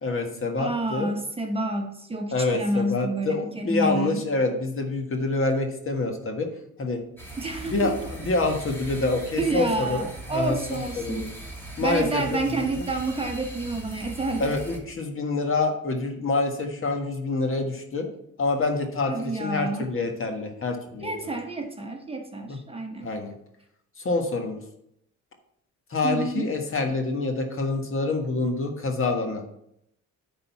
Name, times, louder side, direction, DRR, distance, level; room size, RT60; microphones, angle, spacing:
voice 1, 0.0-1.1 2.3-6.5 6.8-7.0 7.6-10.0 10.3-11.3 11.8-12.8 14.4-18.1 18.4-21.1 22.5-22.6 23.0-23.3 24.0-24.6 25.9-29.4, left 3 dB, 45° left, 4 dB, 1.6 m, -27 dB
voice 2, 0.6-4.2 7.4-7.9 9.3-11.3 11.8-14.5 19.1-19.9 21.0-23.1 26.0-26.5, right 2 dB, 20° right, 3 dB, 1.1 m, -29 dB
sound 1, 7.2-14.8, right 2 dB, 5° left, 2.3 m, -40 dB
9.8 x 4.0 x 5.7 m, 0.77 s
cardioid pair, 90°, 30 cm